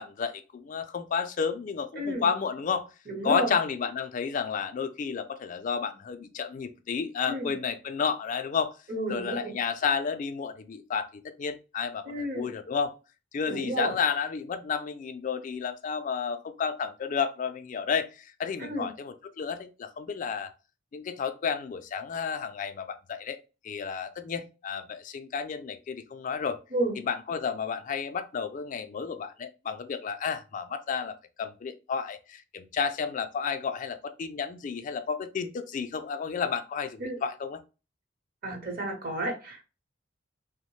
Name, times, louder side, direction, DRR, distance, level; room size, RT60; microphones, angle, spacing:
voice 1, 0.0-2.9 3.2-8.7 9.1-12.9 13.3-20.5 20.9-23.4 23.6-26.6 27.0-37.6, left 6 dB, 40° left, 0.3 m, -31 dB
voice 2, 2.0-2.3 3.1-3.5 7.3-7.5 8.9-9.5 12.0-12.5 13.5-13.9 18.6-18.9 26.7-26.9 37.0-37.2 38.4-39.6, right 1 dB, 50° right, 0.9 m, -31 dB
2.9 x 2.1 x 3.0 m
head